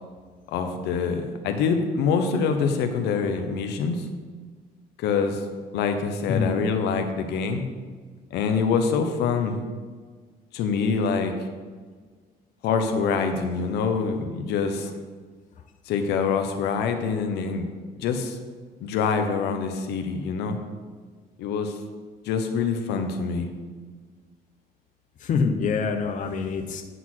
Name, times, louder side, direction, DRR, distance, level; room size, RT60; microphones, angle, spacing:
voice 1, 0.5-4.0 5.0-5.4 5.7-7.6 8.3-9.6 10.5-11.3 12.6-14.9 15.9-17.7 17.9-18.4 18.8-20.6 21.4-21.7 22.2-23.5, left 5 dB, 80° left, 6 dB, 0.9 m, -25 dB
voice 2, 6.3-6.6 25.2-26.8, left 5 dB, 50° left, 4 dB, 0.8 m, -25 dB
9.3 x 4.0 x 6.2 m, 1.5 s
cardioid pair, 110°, 17 cm